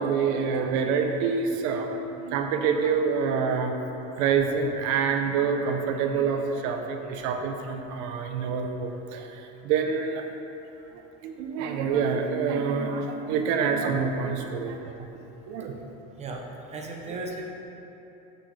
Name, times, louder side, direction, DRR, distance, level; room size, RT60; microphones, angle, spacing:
voice 1, 0.0-3.7 4.2-9.2 9.6-10.2 11.2-14.8 15.5-15.8 17.1-17.2, right 5 dB, 65° right, 4 dB, 0.9 m, -26 dB
voice 2, 16.7-17.4, right 3 dB, 20° right, 0 dB, 0.9 m, -35 dB
14.5 x 6.3 x 3.4 m, 3.0 s
cardioid pair, 180°, 33 cm